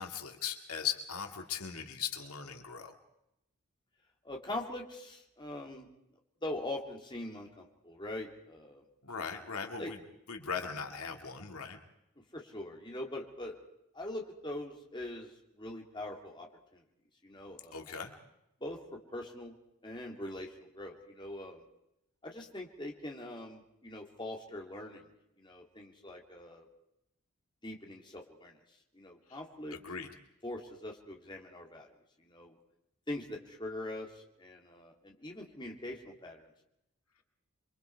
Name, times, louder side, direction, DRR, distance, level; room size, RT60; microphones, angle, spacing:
voice 1, 0.0-3.0 9.0-10.0 10.3-11.8 17.7-18.1 29.3-29.4 29.7-30.1, left 7 dB, 85° left, 4 dB, 2.3 m, -39 dB
voice 2, 4.2-5.9 6.4-8.8 9.8-9.9 12.3-13.6 13.9-15.3 15.6-16.8 17.2-17.8 18.6-19.5 19.8-21.6 22.2-25.0 25.4-26.7 27.6-28.6 28.9-29.8 30.4-31.9 32.2-32.5 33.1-36.5, left 1 dB, 20° left, 1 dB, 2.8 m, -42 dB
28.5 x 23.5 x 4.7 m, 0.84 s
head